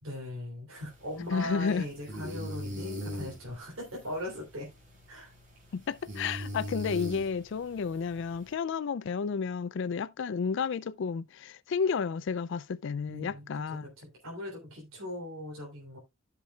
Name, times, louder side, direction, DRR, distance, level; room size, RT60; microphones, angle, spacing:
voice 1, 0.0-4.7 5.1-5.3 13.1-16.0, left 1 dB, 75° right, 3.3 m, -40 dB
sound 1, 0.8-8.5, equal, 40° right, 5.1 m, -41 dB
voice 2, 1.3-1.8 5.7-13.9, left 5 dB, 60° left, 0.4 m, -31 dB
13.5 x 6.0 x 2.3 m
head